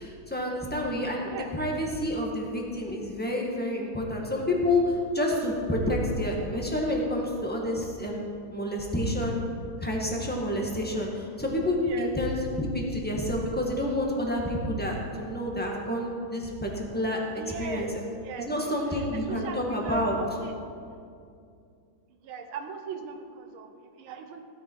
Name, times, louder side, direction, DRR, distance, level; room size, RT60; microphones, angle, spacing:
voice 1, 0.0-9.4 9.8-17.9 18.4-20.2, left 1 dB, 5° left, -1 dB, 1.5 m, -29 dB
voice 2, 11.8-12.1 17.4-17.9 18.2-18.5 18.9-20.5 22.2-24.4, right 6 dB, 90° right, 5 dB, 1.7 m, -39 dB
16.0 x 9.8 x 4.7 m, 2.4 s
omnidirectional pair, 2.2 m